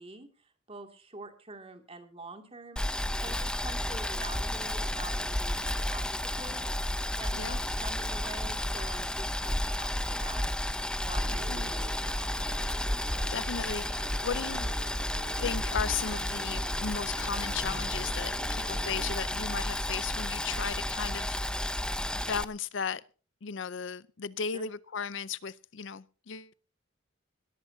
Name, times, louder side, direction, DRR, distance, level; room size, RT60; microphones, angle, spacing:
voice 1, 0.0-6.1 6.3-6.7 7.2-10.5 11.0-12.3 24.5-24.7, right 2 dB, 30° right, 2.3 m, -46 dB
Boiling, 2.8-22.4, left 1 dB, 5° left, 0.5 m, -32 dB
sound 1, 11.2-19.2, right 2 dB, 50° right, 2.1 m, -47 dB
voice 2, 13.3-14.7 15.2-21.7 22.1-23.0 23.4-26.5, left 6 dB, 65° left, 0.5 m, -36 dB
20.0 x 14.5 x 2.7 m
head